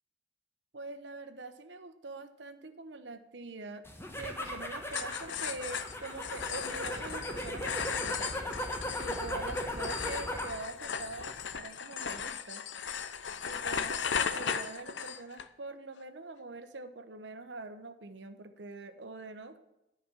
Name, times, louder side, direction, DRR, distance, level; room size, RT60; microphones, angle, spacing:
voice 1, 0.7-3.8 4.2-8.3 9.0-12.6 13.4-19.6, right 3 dB, 75° right, 9 dB, 0.9 m, -44 dB
sound 1, 3.9-10.6 11.0-11.5, left 1 dB, 15° left, 1.3 m, -38 dB
sound 2, 4.9-15.5, left 7 dB, 80° left, 0.6 m, -37 dB
10.5 x 5.3 x 7.1 m, 0.94 s
head